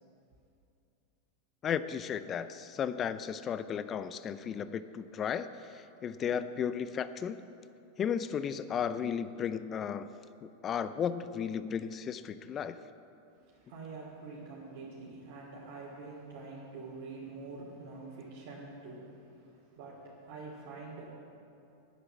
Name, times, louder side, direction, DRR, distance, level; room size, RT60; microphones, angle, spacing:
voice 1, 1.6-7.4 8.0-10.1 10.4-12.8, left 8 dB, 30° left, 13 dB, 0.5 m, -34 dB
voice 2, 13.4-21.1, right 3 dB, 65° right, -7 dB, 3.0 m, -46 dB
10.0 x 9.2 x 7.2 m, 2.6 s
supercardioid pair, 130°, 0 cm